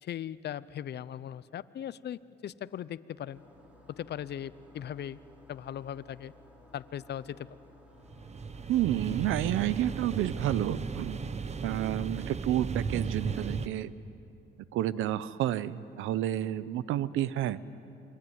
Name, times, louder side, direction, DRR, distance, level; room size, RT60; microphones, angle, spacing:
voice 1, 0.0-3.4 3.9-5.2 5.5-6.3 6.7-7.5, left 10 dB, 55° left, 17 dB, 0.7 m, -39 dB
sound 1, 3.3-11.7, left 2 dB, 5° right, 5.0 m, -57 dB
sound 2, 8.1-13.7, right 5 dB, 35° right, 0.9 m, -35 dB
voice 2, 8.7-11.2 11.6-13.9 14.7-17.6, right 12 dB, 90° right, 17 dB, 0.8 m, -30 dB
28.5 x 22.5 x 9.4 m, 2.8 s
cardioid pair, 90°, 20 cm